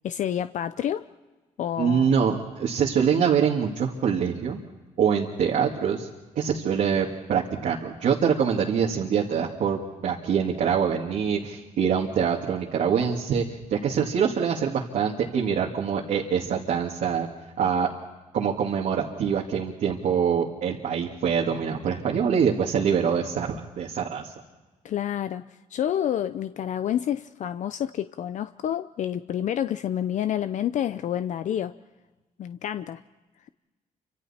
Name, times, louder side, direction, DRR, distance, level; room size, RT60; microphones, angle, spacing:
voice 1, 0.0-1.1 1.6-2.1 24.8-25.4 25.7-31.7 32.4-33.0, left 10 dB, 60° left, 12 dB, 0.6 m, -28 dB
voice 2, 1.8-4.6 5.0-6.1 6.4-13.4 13.7-17.3 17.6-17.9 18.3-24.3, right 7 dB, 70° right, -2 dB, 2.2 m, -24 dB
29.0 x 26.0 x 4.3 m, 1.2 s
cardioid pair, 100°, 14 cm